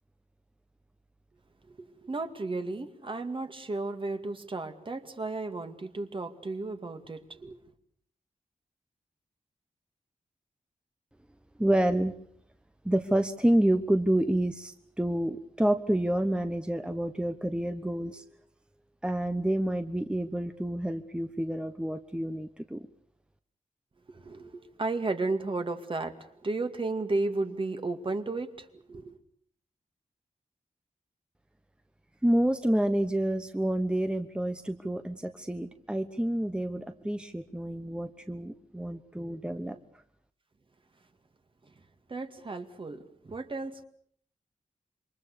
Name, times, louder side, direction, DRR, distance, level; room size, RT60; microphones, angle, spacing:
voice 1, 2.0-7.6 24.1-26.1 26.4-29.2 42.1-43.8, right 3 dB, 40° right, 7 dB, 2.2 m, -33 dB
voice 2, 11.6-12.1 12.8-18.2 19.0-22.9 32.2-39.8, right 1 dB, 5° right, 8 dB, 1.1 m, -28 dB
27.5 x 24.0 x 6.9 m, 0.63 s
wide cardioid pair, 110°, 13 cm